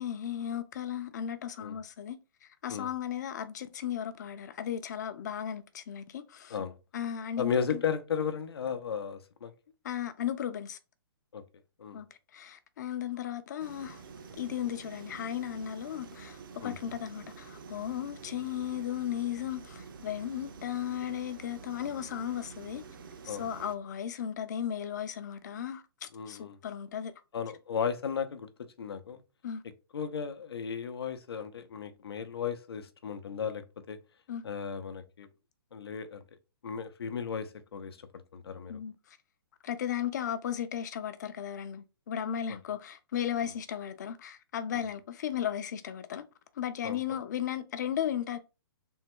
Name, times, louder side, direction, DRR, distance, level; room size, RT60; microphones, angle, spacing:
voice 1, 0.0-6.6 6.9-7.8 9.8-10.8 11.9-12.1 12.3-14.0 14.4-22.8 23.2-27.1 29.4-29.6 34.3-34.4 38.7-39.2 39.6-46.2 46.6-48.4, left 10 dB, 45° left, 0.5 m, -35 dB
voice 2, 7.4-9.5 11.3-11.4 11.8-12.0 16.6-16.8 23.3-23.4 26.1-26.6 27.3-28.5 28.8-29.2 29.9-34.0 34.4-35.3 35.7-36.2 36.6-38.0 38.3-38.8 42.5-42.6 46.8-47.0, left 7 dB, 90° left, 0.7 m, -35 dB
sound 1, 13.6-23.8, right 5 dB, 60° right, 0.6 m, -48 dB
3.5 x 2.2 x 4.4 m
hypercardioid pair, 165°, 13 cm